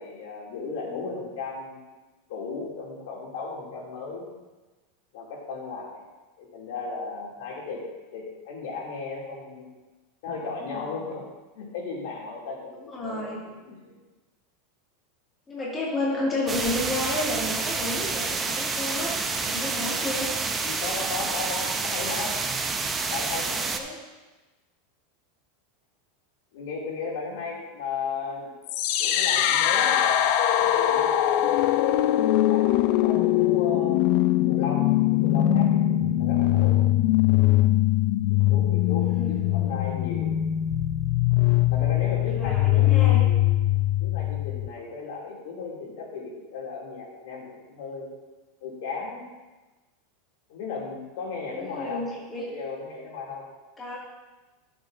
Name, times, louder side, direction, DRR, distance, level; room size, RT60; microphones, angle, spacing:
voice 1, 0.0-1.8 2.3-4.2 5.1-6.0 6.4-7.8 8.1-9.7 10.2-11.2 11.5-13.9 20.6-22.4 23.1-23.7 26.5-28.5 29.0-30.2 30.7-34.0 34.5-36.8 38.3-40.4 41.7-43.7 44.0-48.1 48.6-49.3 50.5-52.1 52.4-53.5, left 4 dB, 70° left, -3 dB, 2.7 m, -35 dB
voice 2, 12.9-13.4 15.5-20.3 23.7-24.0 39.0-39.5 42.4-43.2 51.5-52.5 53.8-54.0, left 1 dB, 15° left, -6 dB, 2.2 m, -31 dB
sound 1, 16.5-23.8, right 4 dB, 15° right, 0.6 m, -29 dB
sound 2, 28.7-44.7, left 13 dB, 55° left, 0.5 m, -22 dB
11.5 x 7.7 x 2.7 m, 1.2 s
supercardioid pair, 145°, 0 cm